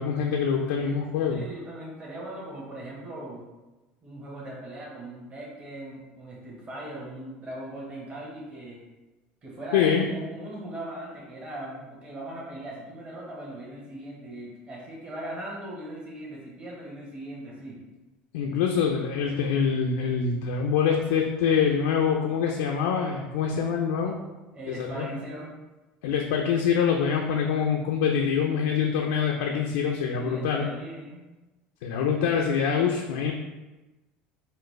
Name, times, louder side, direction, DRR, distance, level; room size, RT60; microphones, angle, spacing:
voice 1, 0.0-1.4 9.7-10.1 18.3-24.2 24.7-25.1 26.0-30.7 31.8-33.3, left 7 dB, 90° left, 1 dB, 0.3 m, -25 dB
voice 2, 1.3-3.4 4.0-8.8 9.4-17.8 24.5-25.5 30.1-31.2, right 1 dB, 30° right, -4 dB, 1.1 m, -39 dB
3.9 x 2.0 x 3.1 m, 1.1 s
supercardioid pair, 100°, 4 cm